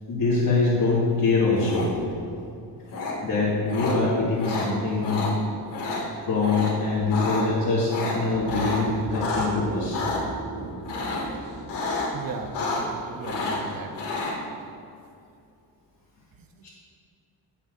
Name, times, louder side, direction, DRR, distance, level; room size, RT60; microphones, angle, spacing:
voice 1, 0.1-1.9 3.2-5.3 6.2-10.0 16.6-16.7, left 3 dB, 55° left, -9 dB, 2.5 m, -24 dB
sound 1, 1.6-2.1 2.9-3.1 3.7-3.9 4.4-4.7 5.0-5.3 5.7-6.0 6.4-6.7 7.0-7.4 7.9-9.5 9.9-10.2 10.9-11.3 11.7-12.1 12.4-13.0 13.2-14.3, left 3 dB, 75° left, 2.6 m, -29 dB
sound 2, 8.3-13.9, right 1 dB, 35° right, 1.6 m, -39 dB
voice 2, 12.1-13.9 16.4-16.7, right 4 dB, 55° right, 5 dB, 0.9 m, -37 dB
18.5 x 7.3 x 2.7 m, 2.5 s
cardioid pair, 155°, 42 cm